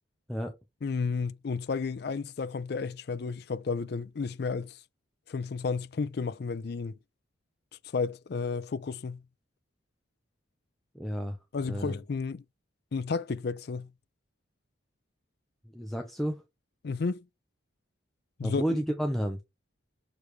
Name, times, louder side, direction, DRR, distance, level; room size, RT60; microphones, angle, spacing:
voice 1, 0.8-4.8 5.3-7.0 7.9-9.2 11.5-12.4 12.9-13.9 16.8-17.2 18.4-18.6, left 4 dB, 50° left, 0.4 m, -32 dB
voice 2, 10.9-11.4 11.7-12.0 15.7-16.4 18.4-19.4, equal, ahead, 0.6 m, -31 dB
6.6 x 3.4 x 4.5 m
head